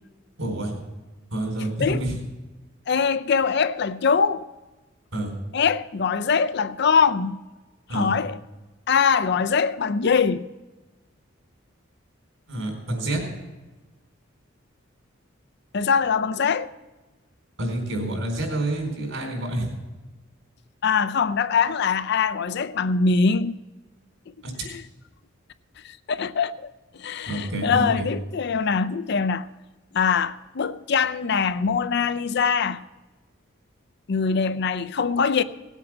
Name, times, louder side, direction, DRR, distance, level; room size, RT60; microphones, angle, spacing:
voice 1, 0.4-0.7 1.3-2.2 5.1-5.3 7.9-8.1 12.5-13.2 17.6-19.8 24.4-24.7 27.3-28.1, right 1 dB, 75° right, 4.3 m, -28 dB
voice 2, 2.9-4.5 5.5-7.4 7.9-8.4 8.9-10.5 15.7-16.7 20.8-23.5 24.6-24.8 25.8-26.7 26.9-29.5 29.9-32.8 34.1-35.4, left 5 dB, 55° left, 0.5 m, -23 dB
17.5 x 8.2 x 6.1 m
head